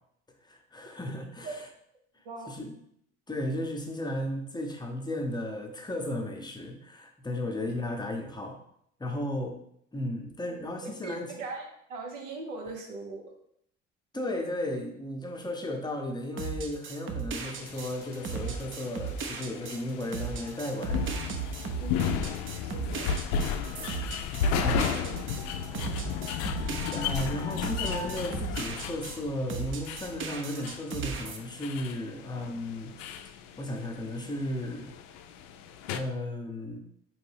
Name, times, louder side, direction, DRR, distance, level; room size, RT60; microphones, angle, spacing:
voice 1, 0.4-1.6 2.5-2.8 3.3-8.5 9.0-9.6 9.9-11.3 14.1-21.1 24.6-24.9 26.9-32.9 33.6-34.9 35.9-36.8, left 1 dB, 10° left, 2 dB, 0.8 m, -34 dB
voice 2, 10.8-13.3 21.8-22.3 22.6-23.1 24.4-25.2, right 3 dB, 75° right, 1 dB, 0.8 m, -40 dB
sound 1, 16.4-29.2 29.5-31.4, right 6 dB, 35° right, 0.6 m, -36 dB
sound 2, 17.4-36.0, left 6 dB, 60° left, 0.5 m, -34 dB
4.3 x 3.1 x 3.3 m, 0.72 s
figure-of-eight pair, 60°, 37 cm